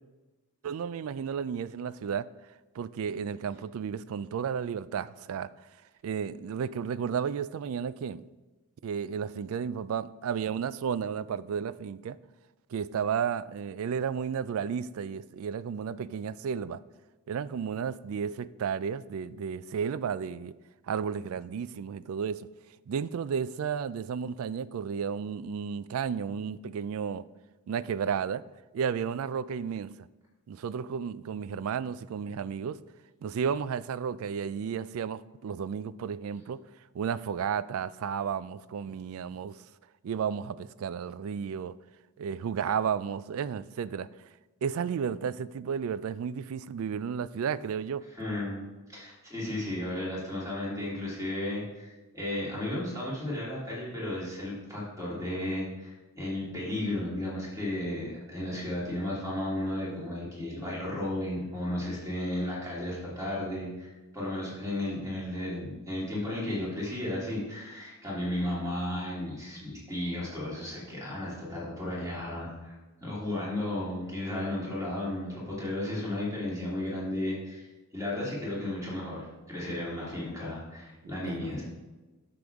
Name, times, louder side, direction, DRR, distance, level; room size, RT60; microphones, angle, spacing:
voice 1, 0.6-2.2 2.7-5.5 6.0-8.2 8.8-12.2 12.7-16.8 17.3-20.5 20.9-22.5 22.9-27.2 27.7-28.4 28.7-29.9 30.5-32.8 33.2-36.6 36.9-39.6 40.0-41.8 42.2-44.1 44.6-48.0 81.3-81.5, right 7 dB, 65° right, 0.3 m, -33 dB
voice 2, 48.1-72.7 73.0-77.7 77.9-81.6, left 1 dB, 15° right, 2.8 m, -34 dB
9.7 x 6.9 x 3.5 m
head